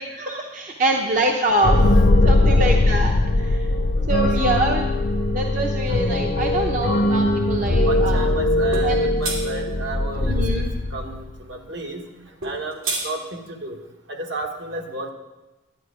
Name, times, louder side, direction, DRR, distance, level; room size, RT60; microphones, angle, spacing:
voice 1, 0.0-1.8 2.2-3.5 4.1-4.9 5.3-8.3 8.8-9.1 10.3-10.7, right 2 dB, 40° right, 1 dB, 0.7 m, -24 dB
sound 1, 1.6-11.3, left 2 dB, 45° left, 0.6 m, -20 dB
voice 2, 2.4-2.8 4.0-4.4 7.8-10.6 10.9-12.1 12.4-13.8 14.1-15.1, right 2 dB, 60° right, 2 dB, 1.4 m, -32 dB
sound 2, 8.7-8.9 9.2-9.4 12.4-13.1, right 3 dB, 90° right, 2.6 m, -27 dB
11.5 x 9.7 x 4.9 m, 1.1 s
head